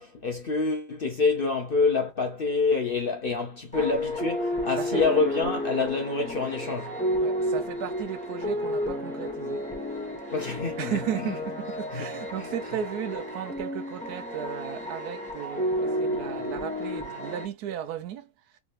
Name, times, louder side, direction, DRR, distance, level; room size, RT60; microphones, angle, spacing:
voice 1, 0.0-7.0 10.3-11.3 11.9-12.1, left 4 dB, 50° left, 0.7 m, -27 dB
sound 1, 3.7-17.4, equal, 5° left, 1.1 m, -31 dB
voice 2, 7.2-9.7 10.8-18.6, right 10 dB, 75° right, 1.1 m, -35 dB
3.6 x 3.2 x 2.4 m
omnidirectional pair, 1.7 m